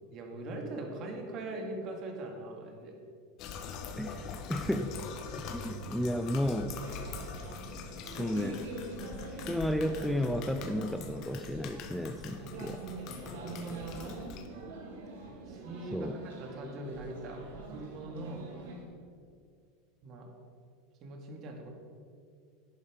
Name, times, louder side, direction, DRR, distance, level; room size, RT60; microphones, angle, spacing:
voice 1, 0.1-3.0 13.2-14.1 15.5-18.5 20.0-20.3 21.0-21.7, right 2 dB, 45° right, 2 dB, 2.3 m, -41 dB
sound 1, 3.4-14.5, left 5 dB, 50° left, 1.2 m, -43 dB
voice 2, 4.0-4.9 5.3-6.8 8.0-8.6 9.4-12.8 15.9-16.2, equal, ahead, 7 dB, 0.5 m, -33 dB
sound 2, 6.8-18.8, right 2 dB, 85° right, 2.6 m, -45 dB
11.0 x 9.7 x 5.3 m, 2.2 s
supercardioid pair, 125°, 0 cm